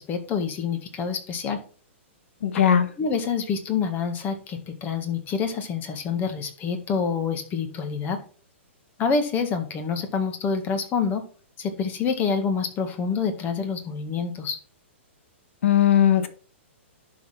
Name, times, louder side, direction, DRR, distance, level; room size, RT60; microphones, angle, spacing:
voice 1, 0.0-1.6 3.0-8.2 9.0-11.2 11.6-14.6, left 6 dB, 25° left, 7 dB, 1.7 m, -27 dB
voice 2, 2.4-2.9 15.6-16.3, left 9 dB, 70° left, 10 dB, 1.4 m, -18 dB
11.5 x 4.2 x 5.8 m, 0.40 s
hypercardioid pair, 135°, 7 cm